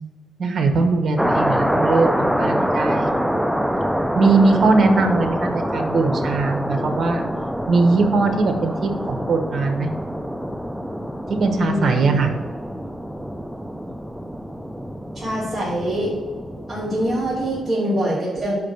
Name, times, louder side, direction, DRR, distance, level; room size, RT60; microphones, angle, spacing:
voice 1, 0.4-3.1 4.1-7.2 7.7-9.9 11.3-12.3, right 3 dB, 55° right, 6 dB, 1.0 m, -20 dB
sound 1, 1.2-17.7, equal, ahead, 0.4 m, -25 dB
voice 2, 11.5-12.2 15.1-16.1 16.7-18.5, equal, 20° right, -9 dB, 2.5 m, -24 dB
5.5 x 5.0 x 6.3 m, 1.4 s
cardioid pair, 110°, 0 cm